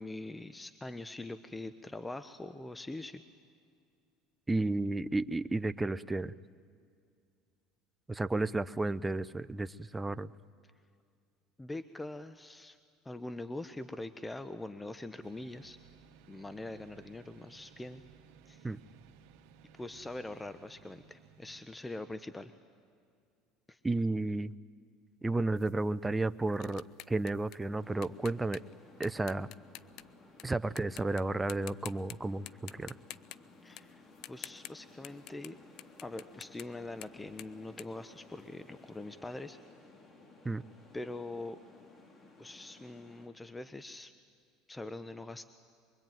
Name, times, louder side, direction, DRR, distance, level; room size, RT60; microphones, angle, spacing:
voice 1, 0.0-3.2 8.3-8.5 11.6-12.8 13.0-15.8 16.3-18.0 18.5-18.7 19.8-22.5 23.7-23.8 33.6-35.6 36.0-39.6 40.9-41.6 42.4-44.1 44.7-45.5, left 2 dB, 10° left, 12 dB, 0.9 m, -43 dB
voice 2, 4.5-6.3 8.1-10.3 18.6-18.8 23.8-24.5 25.2-28.6 29.0-29.5 30.4-32.9 40.4-40.6, right 2 dB, 15° right, 15 dB, 0.6 m, -32 dB
sound 1, 15.2-21.6, right 7 dB, 70° right, 1.5 m, -59 dB
sound 2, 25.6-30.4 30.8-31.2 31.5-32.2 32.5-35.5 35.8-38.8, left 14 dB, 60° left, 0.5 m, -49 dB
sound 3, 27.8-43.3, left 3 dB, 35° left, 4.3 m, -57 dB
24.0 x 23.0 x 9.2 m, 2.3 s
supercardioid pair, 100°, 0 cm